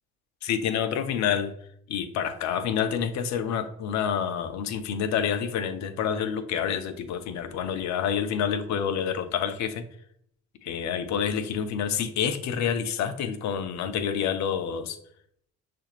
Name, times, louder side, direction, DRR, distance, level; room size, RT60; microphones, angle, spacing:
voice 1, 0.4-1.5 1.9-9.8 10.6-15.0, left 8 dB, 60° left, 10 dB, 0.6 m, -28 dB
6.2 x 2.5 x 3.0 m, 0.70 s
hypercardioid pair, 65°, 32 cm